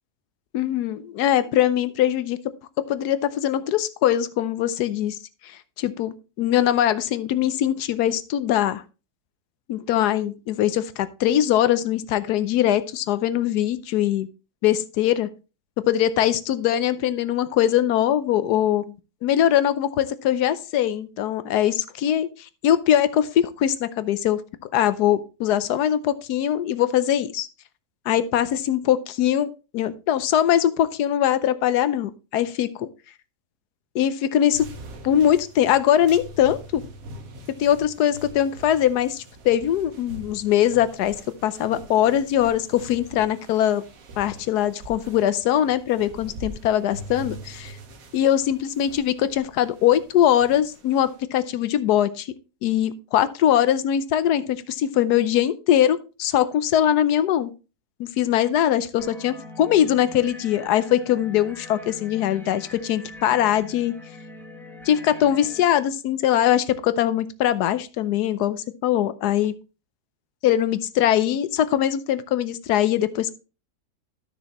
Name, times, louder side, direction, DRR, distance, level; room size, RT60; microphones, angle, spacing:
voice 1, 0.5-2.4 2.9-5.2 5.4-8.8 9.7-14.3 14.6-15.3 15.8-18.9 19.2-22.3 22.6-24.4 24.7-27.5 28.1-32.9 33.9-34.7 35.0-36.8 37.6-41.2 41.4-43.8 44.2-47.8 48.1-52.3 52.6-57.5 58.0-64.0 64.8-69.5 70.4-73.3, left 11 dB, 85° left, 14 dB, 1.2 m, -22 dB
sound 1, 34.5-51.2, right 1 dB, 65° right, 1.5 m, -43 dB
sound 2, 59.0-65.6, left 2 dB, ahead, 1.2 m, -43 dB
12.5 x 6.2 x 3.0 m, 0.32 s
omnidirectional pair, 1.7 m